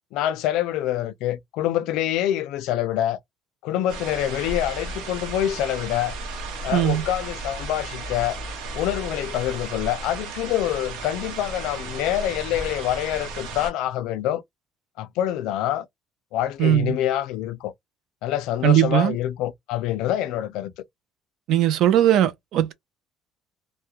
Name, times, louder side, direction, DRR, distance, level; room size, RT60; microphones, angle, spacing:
voice 1, 0.1-3.2 3.6-6.2 6.6-8.4 8.7-14.4 15.0-15.9 16.3-17.7 18.2-20.7, left 12 dB, 70° left, 0.4 m, -26 dB
sound 1, 3.9-13.7, right 3 dB, 80° right, 0.8 m, -34 dB
voice 2, 6.7-7.0 16.6-16.9 18.6-19.2 21.5-22.7, right 11 dB, 50° right, 0.4 m, -19 dB
2.3 x 2.1 x 2.8 m
cardioid pair, 170°, 0 cm